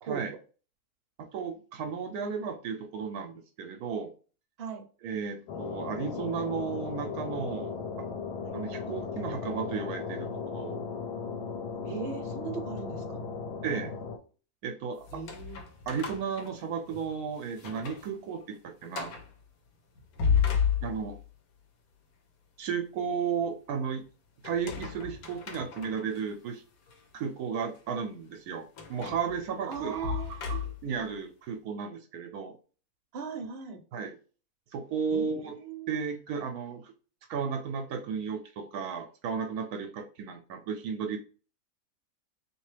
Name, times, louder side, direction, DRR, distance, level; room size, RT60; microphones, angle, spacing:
voice 1, 0.0-0.4 4.6-4.9 8.4-8.6 11.9-13.2 15.1-15.6 29.7-30.3 33.1-33.8 35.1-35.9, right 6 dB, 50° right, 3 dB, 0.9 m, -38 dB
voice 2, 1.2-4.1 5.0-8.1 8.5-10.8 13.6-13.9 14.6-15.1 15.9-19.1 20.8-21.2 22.6-24.0 24.4-26.6 27.1-32.5 33.9-34.2 34.7-35.5 35.9-36.9 37.3-41.2, right 6 dB, 75° right, 5 dB, 1.0 m, -34 dB
sound 1, 5.5-14.2, left 5 dB, 85° left, 1.3 m, -37 dB
sound 2, 15.0-17.1 17.5-18.1 18.4-18.5 18.9-19.3 20.0-21.3 24.4-26.2 26.9-27.0 28.8-31.0, left 7 dB, 70° left, 1.2 m, -33 dB
3.6 x 2.9 x 3.2 m, 0.37 s
omnidirectional pair, 1.7 m